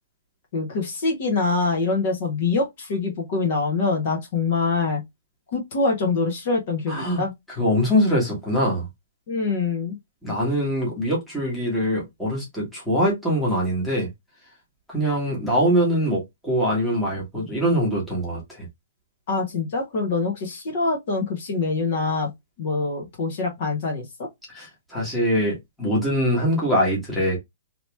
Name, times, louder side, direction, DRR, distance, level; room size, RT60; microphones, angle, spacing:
voice 1, 0.5-5.0 5.5-7.3 9.3-10.0 19.3-22.3 22.6-24.1, left 4 dB, 40° left, 1.2 m, -24 dB
voice 2, 6.9-7.2 7.6-8.8 10.2-14.1 14.9-18.7 24.5-27.4, equal, ahead, 1.4 m, -23 dB
3.0 x 2.9 x 3.3 m
hypercardioid pair, 170°, 0 cm